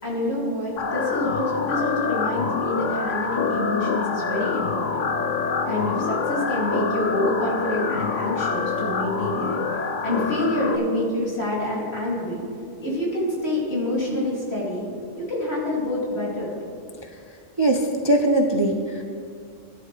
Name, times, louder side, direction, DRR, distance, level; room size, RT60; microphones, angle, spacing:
voice 1, 0.0-5.1 5.7-9.6 10.0-12.4 12.8-14.9 15.2-16.6, left 1 dB, 55° left, -5 dB, 3.2 m, -27 dB
sound 1, 0.8-10.8, left 5 dB, 85° left, 1.2 m, -26 dB
voice 2, 17.6-19.0, right 1 dB, 30° right, 2 dB, 0.5 m, -21 dB
16.5 x 10.5 x 3.4 m, 2.3 s
omnidirectional pair, 1.3 m